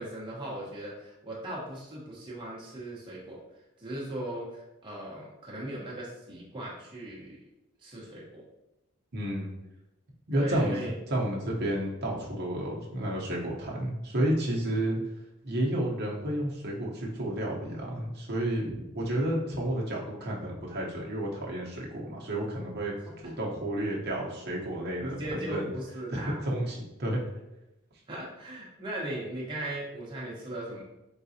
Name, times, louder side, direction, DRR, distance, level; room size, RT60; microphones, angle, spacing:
voice 1, 0.0-3.4 3.8-7.4 7.8-8.4 10.3-10.9 14.6-15.1 18.7-18.8 25.0-26.4 28.1-30.8, right 1 dB, 20° right, -5 dB, 1.0 m, -38 dB
voice 2, 9.1-9.5 10.3-15.0 15.4-18.7 18.9-25.7 26.1-27.2, right 1 dB, 50° right, -3 dB, 0.9 m, -31 dB
3.9 x 3.8 x 2.8 m, 0.93 s
head